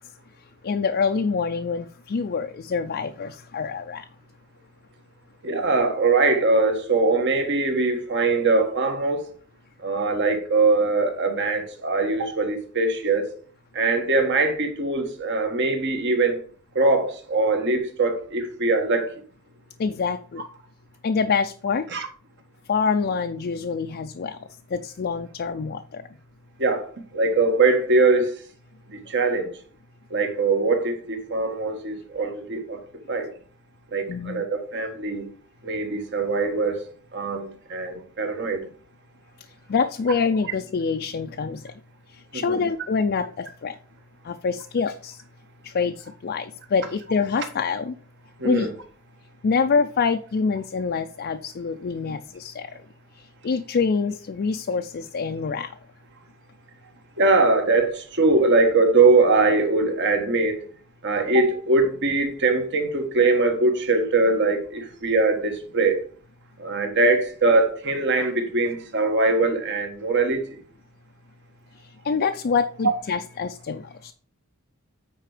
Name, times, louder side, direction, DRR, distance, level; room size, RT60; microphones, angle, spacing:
voice 1, 0.6-4.1 19.8-20.4 21.0-21.9 22.7-24.4 24.7-26.0 34.1-34.4 39.7-41.7 42.1-43.8 44.2-45.2 45.6-48.0 48.4-48.7 49.4-52.7 53.1-55.8 71.8-74.1, left 5 dB, 50° left, 0.4 m, -26 dB
voice 2, 5.4-9.3 9.8-13.3 13.7-16.4 16.7-19.2 21.9-22.1 26.6-28.3 28.9-29.5 30.1-32.8 33.1-33.3 33.9-35.2 35.6-36.8 37.1-38.6 42.3-42.6 48.4-48.7 57.2-60.6 61.0-66.0 66.6-70.4, right 3 dB, 55° right, 1.5 m, -22 dB
9.1 x 4.6 x 5.0 m
head